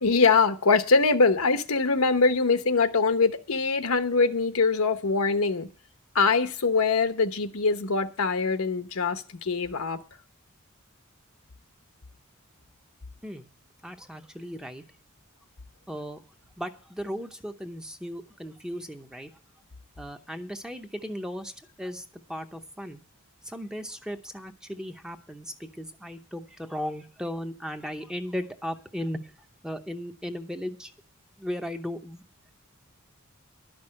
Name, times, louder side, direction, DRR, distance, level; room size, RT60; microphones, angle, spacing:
voice 1, 0.0-5.7 6.1-10.0, left 4 dB, 80° left, 1.0 m, -23 dB
voice 2, 13.8-14.8 15.9-16.2 16.6-19.3 20.0-21.5 21.8-23.0 23.4-29.3 29.6-30.9 31.4-32.2, equal, 5° right, 0.8 m, -36 dB
11.5 x 6.2 x 8.7 m
head